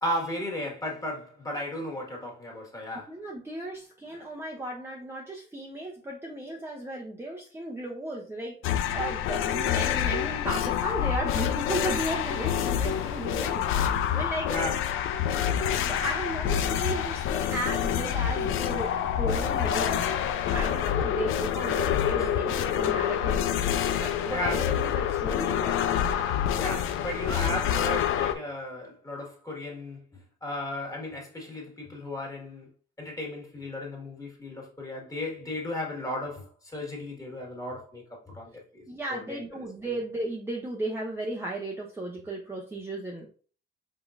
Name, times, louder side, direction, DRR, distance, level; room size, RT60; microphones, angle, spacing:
voice 1, 0.0-3.2 14.5-15.0 22.2-22.3 24.3-24.7 26.6-30.0 30.4-32.7 33.0-38.8 39.1-39.4, left 1 dB, 15° left, 1.8 m, -35 dB
voice 2, 3.1-14.5 15.3-20.0 20.5-23.4 24.0-26.0 38.9-43.3, right 1 dB, 10° right, 0.8 m, -35 dB
sound 1, 8.6-28.3, left 9 dB, 80° left, 0.6 m, -27 dB
5.1 x 3.7 x 2.6 m
cardioid pair, 115°, 21 cm